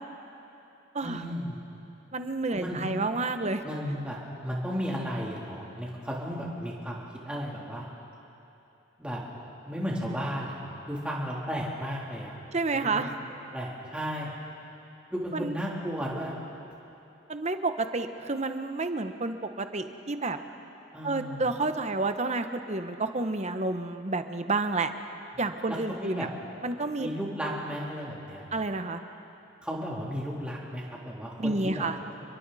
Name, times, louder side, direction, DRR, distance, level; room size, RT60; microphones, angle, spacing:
voice 1, 1.0-1.6 2.5-2.8 3.6-7.9 9.0-9.2 9.7-10.6 10.9-12.3 12.8-13.0 13.5-14.3 15.1-16.3 20.9-21.4 25.7-26.3 27.0-28.5 29.6-31.9, equal, 5° right, -4 dB, 3.3 m, -34 dB
voice 2, 2.1-3.6 12.5-13.1 15.3-15.5 17.3-20.4 21.0-24.9 25.4-26.3 26.6-27.1 28.5-29.0 31.4-32.0, right 3 dB, 35° right, 8 dB, 1.0 m, -30 dB
29.5 x 22.5 x 4.2 m, 3.0 s
head